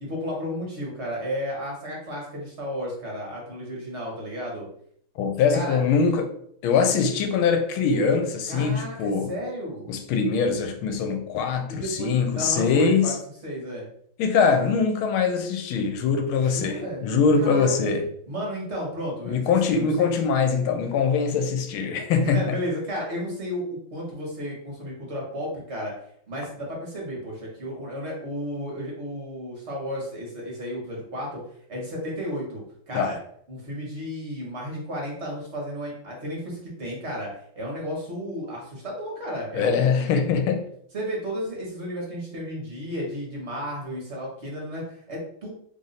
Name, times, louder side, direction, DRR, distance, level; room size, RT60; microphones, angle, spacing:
voice 1, 0.0-4.7 5.5-5.8 8.5-9.8 11.7-12.1 12.4-13.1 13.4-13.9 16.4-17.0 17.3-17.9 18.3-20.1 22.2-25.9 26.3-31.4 31.7-33.2 33.5-40.3 40.9-45.5, equal, 40° right, 1.2 m, -33 dB
voice 2, 5.2-6.3 6.6-9.3 9.9-13.1 14.2-18.1 19.3-22.6 32.9-33.1 39.5-40.6, left 5 dB, 80° left, 1.5 m, -23 dB
3.4 x 2.5 x 4.0 m
omnidirectional pair, 2.3 m